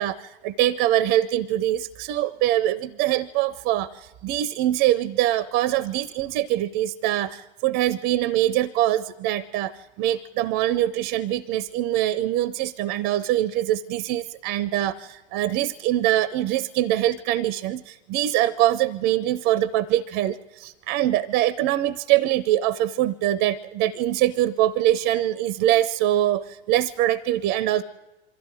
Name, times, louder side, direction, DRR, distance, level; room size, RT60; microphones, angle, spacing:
voice 1, 0.0-9.7 10.0-27.8, right 13 dB, 30° right, 19 dB, 0.6 m, -23 dB
23.0 x 14.0 x 9.2 m, 1.1 s
figure-of-eight pair, 95°, 31 cm